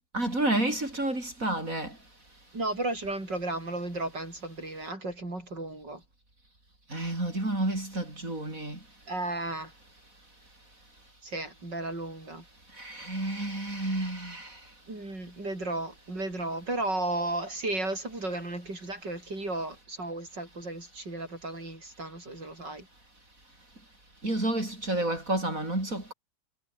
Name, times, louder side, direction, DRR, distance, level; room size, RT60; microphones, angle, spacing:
voice 1, 0.1-1.9 6.9-8.8 12.8-14.5 24.2-26.1, right 1 dB, 50° right, 7.2 m, -30 dB
voice 2, 2.5-6.0 9.1-9.7 11.2-12.4 14.9-22.9, right 2 dB, 80° right, 8.8 m, -34 dB
omnidirectional pair, 1.9 m